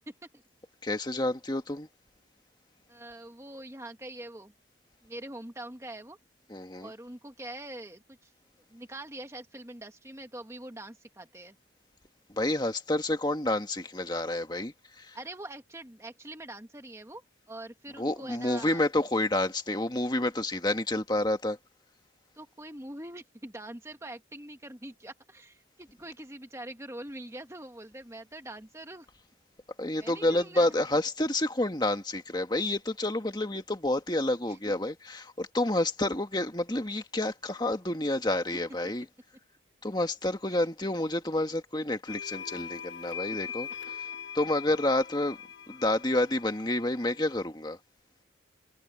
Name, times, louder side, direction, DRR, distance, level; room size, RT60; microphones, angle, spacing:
voice 1, 0.1-0.4 2.9-4.5 5.0-6.2 6.8-8.3 8.7-11.5 15.1-17.2 17.5-18.8 22.3-29.1 30.0-30.8 34.4-34.6 40.5-40.6, right 1 dB, 15° right, 1.4 m, -44 dB
voice 2, 0.8-1.9 6.5-6.9 12.3-15.2 18.0-21.6 29.8-39.1 39.8-44.1 44.3-45.4 45.7-47.8, left 1 dB, 20° left, 1.7 m, -29 dB
sound 1, 42.1-47.3, left 8 dB, 60° left, 1.7 m, -41 dB
head